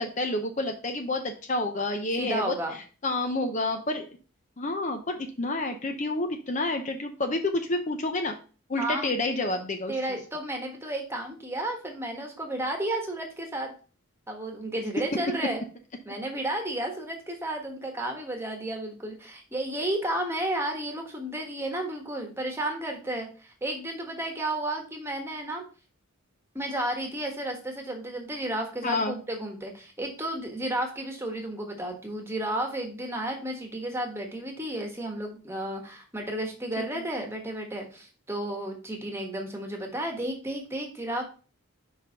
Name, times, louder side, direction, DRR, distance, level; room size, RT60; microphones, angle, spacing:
voice 1, 0.0-2.5 3.0-4.1 4.6-8.4 8.7-9.9 28.8-29.2 36.8-37.0, left 2 dB, 35° left, 5 dB, 0.6 m, -29 dB
voice 2, 2.2-2.8 8.8-9.1 9.9-13.7 14.3-15.6 16.0-25.6 26.5-41.2, right 1 dB, 10° right, 2 dB, 1.3 m, -32 dB
5.3 x 4.8 x 5.5 m, 0.37 s
head